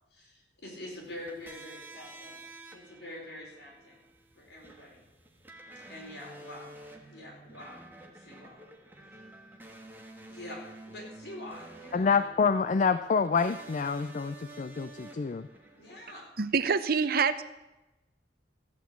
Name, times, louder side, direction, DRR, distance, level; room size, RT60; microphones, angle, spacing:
voice 1, 0.1-2.4 2.7-4.0 4.3-5.0 5.9-6.7 7.1-7.8 8.1-8.6 10.3-10.6 10.9-12.1 15.8-16.3, left 1 dB, 70° left, -2 dB, 4.6 m, -45 dB
sound 1, 1.0-16.2, right 2 dB, 10° right, 1.5 m, -50 dB
voice 2, 11.9-15.5, left 5 dB, 45° left, 12 dB, 0.4 m, -27 dB
voice 3, 16.4-17.4, right 5 dB, 60° right, 13 dB, 0.7 m, -26 dB
14.0 x 5.9 x 8.5 m, 1.0 s
head